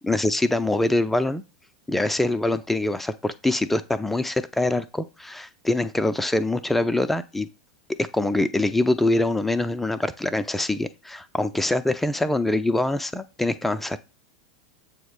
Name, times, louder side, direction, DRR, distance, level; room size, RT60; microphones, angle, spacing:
voice 1, 0.0-1.4 1.9-7.5 8.0-14.0, left 2 dB, 5° left, 12 dB, 0.4 m, -24 dB
7.7 x 3.0 x 5.0 m, 0.30 s
figure-of-eight pair, 85°, 3 cm